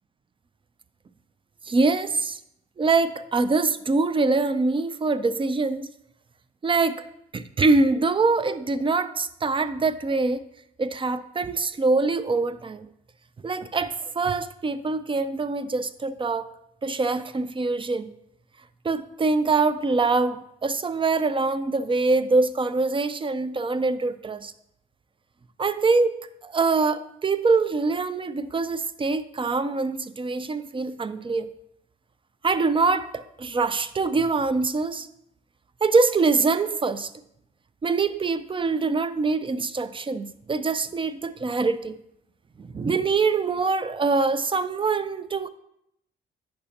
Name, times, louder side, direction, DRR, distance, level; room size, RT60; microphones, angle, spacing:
voice 1, 1.6-2.4 2.8-5.9 6.6-7.0 7.3-10.5 10.8-12.9 13.4-16.5 16.8-18.1 18.8-24.5 25.6-31.5 32.4-35.1 35.8-37.1 37.8-42.0 42.6-45.5, right 3 dB, 25° right, 14 dB, 0.4 m, -24 dB
8.8 x 6.2 x 2.9 m, 0.77 s
supercardioid pair, 70°, 21 cm